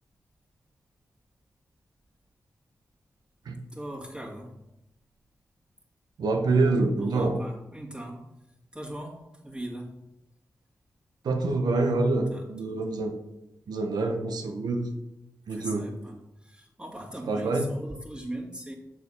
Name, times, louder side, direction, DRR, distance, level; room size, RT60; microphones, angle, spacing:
voice 1, 3.7-4.6 7.0-8.3 8.7-10.0 12.3-12.8 15.5-18.7, right 1 dB, 15° right, -1 dB, 2.0 m, -40 dB
voice 2, 6.2-7.4 11.2-13.1 13.7-14.9 15.5-15.9 17.3-17.7, right 3 dB, 85° right, 5 dB, 0.9 m, -26 dB
7.1 x 4.2 x 5.4 m, 0.89 s
cardioid pair, 50°, 7 cm